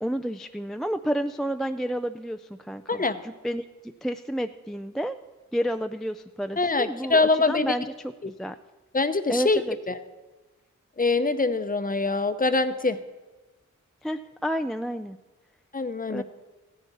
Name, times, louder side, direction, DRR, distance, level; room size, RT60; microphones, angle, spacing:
voice 1, 0.0-5.2 5.5-7.2 7.5-7.9 8.4-8.6 9.3-9.8 14.0-15.2 16.1-16.2, equal, ahead, 7 dB, 0.3 m, -30 dB
voice 2, 2.9-3.2 6.6-7.8 8.2-8.3 8.9-10.0 11.0-13.0 15.7-16.2, left 3 dB, 25° left, 10 dB, 0.7 m, -24 dB
15.0 x 10.5 x 4.2 m, 1.2 s
wide cardioid pair, 85°, 31 cm